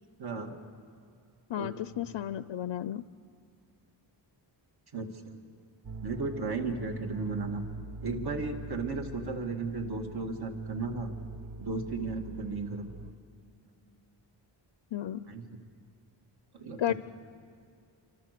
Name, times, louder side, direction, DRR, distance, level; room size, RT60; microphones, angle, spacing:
voice 1, 0.2-0.6 1.6-2.1 4.9-5.1 6.0-7.6 8.0-11.2 11.6-12.9 15.3-15.5 16.5-16.9, right 3 dB, 55° right, 3 dB, 2.2 m, -35 dB
voice 2, 1.5-3.0 14.9-15.2 16.8-16.9, left 12 dB, 80° left, 14 dB, 0.6 m, -33 dB
sound 1, 5.8-13.1, right 3 dB, 75° right, 1.4 m, -43 dB
28.0 x 25.0 x 6.8 m, 2.4 s
wide cardioid pair, 150°, 45 cm